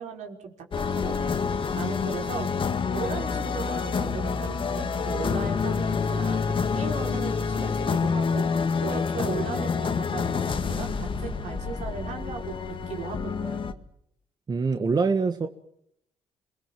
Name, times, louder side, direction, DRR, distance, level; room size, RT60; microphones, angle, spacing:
voice 1, 0.0-1.4 1.8-2.5 2.9-12.5 12.9-13.7, right 5 dB, 75° right, 3 dB, 5.0 m, -37 dB
sound 1, 0.7-13.7, left 5 dB, 45° left, 1.9 m, -27 dB
voice 2, 14.5-15.5, right 4 dB, 35° right, 7 dB, 1.6 m, -24 dB
28.0 x 20.5 x 7.6 m, 0.73 s
cardioid pair, 105°, 12 cm